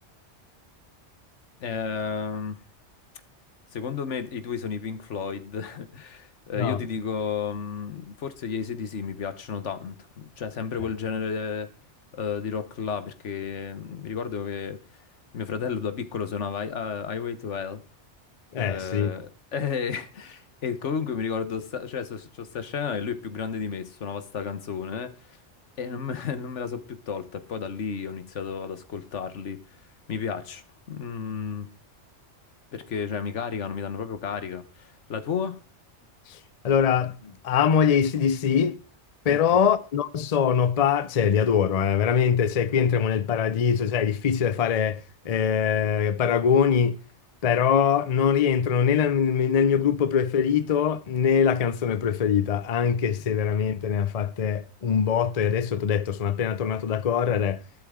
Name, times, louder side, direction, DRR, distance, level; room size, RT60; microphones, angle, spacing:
voice 1, 1.6-2.6 3.7-11.7 12.1-14.8 15.3-17.8 18.5-25.4 25.8-29.6 30.1-31.7 32.7-35.6 39.3-39.7, left 6 dB, 90° left, 1.4 m, -32 dB
voice 2, 18.5-19.1 36.3-36.4 36.6-38.8 39.2-47.0 47.4-57.6, left 7 dB, 40° left, 0.6 m, -23 dB
12.5 x 11.5 x 3.7 m
omnidirectional pair, 1.2 m